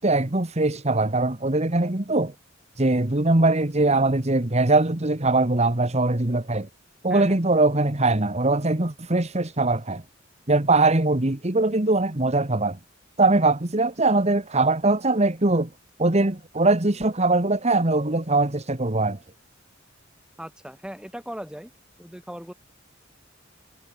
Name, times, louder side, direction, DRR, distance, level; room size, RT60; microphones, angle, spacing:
voice 1, 0.0-2.3 2.8-6.7 7.0-10.0 10.5-12.8 13.2-15.7 16.0-19.2, right 2 dB, 35° right, 1.7 m, -21 dB
voice 2, 7.1-7.4 20.4-21.7 22.0-22.5, equal, 5° right, 6.7 m, -38 dB
head